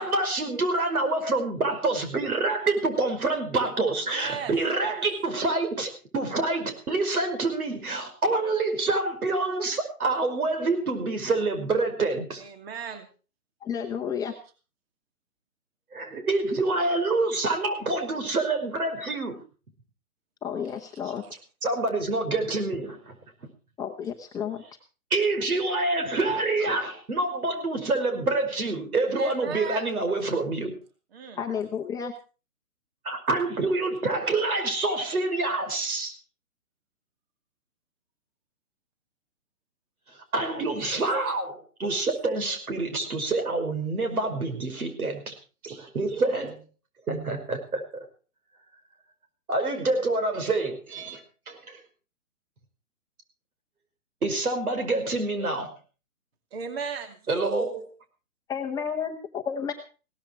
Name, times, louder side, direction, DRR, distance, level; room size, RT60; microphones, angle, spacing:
voice 1, 0.0-12.4 15.9-19.4 21.6-23.2 25.1-30.7 33.0-36.1 40.3-45.3 45.6-46.6 47.1-48.1 49.5-51.2 51.5-51.8 54.2-55.7 57.3-57.9, right 2 dB, 75° right, 6 dB, 5.4 m, -27 dB
voice 2, 4.1-5.0 12.4-13.1 21.0-21.1 29.1-29.9 31.1-31.4 56.5-57.2, right 6 dB, 45° right, 7 dB, 2.6 m, -36 dB
voice 3, 13.6-14.3 20.4-21.2 23.8-24.6 31.3-32.1 58.5-59.7, left 7 dB, 10° left, 1 dB, 0.9 m, -31 dB
17.0 x 13.5 x 4.6 m, 0.36 s
hypercardioid pair, 145°, 44 cm